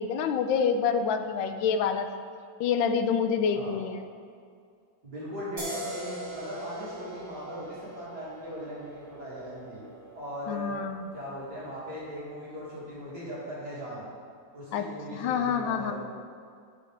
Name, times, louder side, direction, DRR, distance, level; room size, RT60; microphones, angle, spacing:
voice 1, 0.0-2.1 2.6-4.1 10.5-11.0 14.7-15.9, left 6 dB, 80° left, 8 dB, 1.3 m, -27 dB
voice 2, 5.0-9.8 10.1-10.7 11.1-14.1 14.5-15.9, equal, 55° right, -10 dB, 2.9 m, -39 dB
sound 1, 5.6-12.9, equal, 20° right, 1.9 m, -43 dB
10.0 x 6.1 x 3.4 m, 2.3 s
omnidirectional pair, 2.1 m